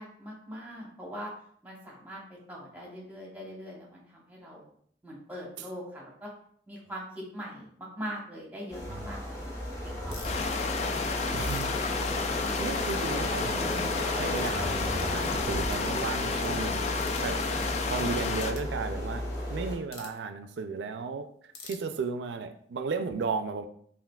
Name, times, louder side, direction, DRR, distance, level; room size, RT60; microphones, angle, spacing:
voice 1, 0.0-1.3 1.6-4.7 5.0-6.3 6.7-9.4 9.8-10.5, equal, 10° right, -3 dB, 0.9 m, -42 dB
sound 1, 8.7-19.8, left 1 dB, 15° left, 0.9 m, -34 dB
sound 2, 10.1-10.4 11.1-12.6 12.8-13.0 13.4-13.5 14.3-14.6 15.2-15.3 15.7-15.9 16.9-17.3 18.4-18.7 19.9-20.2 21.5-22.3, left 4 dB, 65° left, 0.7 m, -47 dB
sound 3, 10.2-18.5, left 4 dB, 40° left, 0.3 m, -31 dB
voice 2, 11.3-11.8 12.1-12.2 12.6-16.8 17.2-21.3 21.6-23.7, right 4 dB, 85° right, 8 dB, 0.4 m, -35 dB
5.7 x 2.5 x 2.3 m, 0.64 s
head